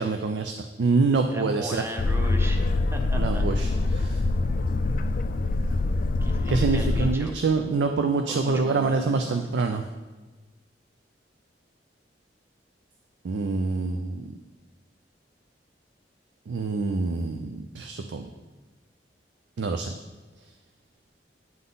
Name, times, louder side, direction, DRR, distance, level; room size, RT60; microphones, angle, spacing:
voice 1, 0.0-1.8 3.1-4.2 6.5-9.8 13.2-14.3 16.5-18.3 19.6-19.9, right 4 dB, 75° right, 6 dB, 0.4 m, -26 dB
voice 2, 1.3-3.5 3.9-4.2 6.2-7.3 8.3-9.9, equal, 15° right, 4 dB, 0.6 m, -38 dB
Boat Water vehicle, 2.0-7.2, left 2 dB, 50° left, 0.3 m, -24 dB
9.2 x 3.7 x 3.9 m, 1.2 s
head